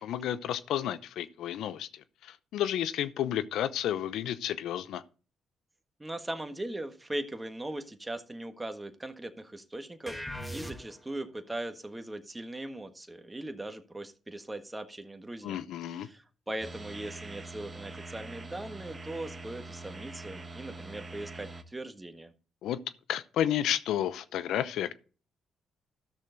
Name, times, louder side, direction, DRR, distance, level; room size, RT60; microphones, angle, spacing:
voice 1, 0.0-5.0 15.4-16.1 22.6-22.8 23.1-24.9, left 11 dB, 75° left, 0.7 m, -31 dB
voice 2, 6.0-10.2 10.5-22.3, right 1 dB, 15° right, 1.5 m, -39 dB
sound 1, 10.1-11.2, equal, 5° left, 1.7 m, -39 dB
sound 2, 16.6-21.6, right 2 dB, 35° right, 1.1 m, -44 dB
13.0 x 6.5 x 4.0 m
supercardioid pair, 55°, 0 cm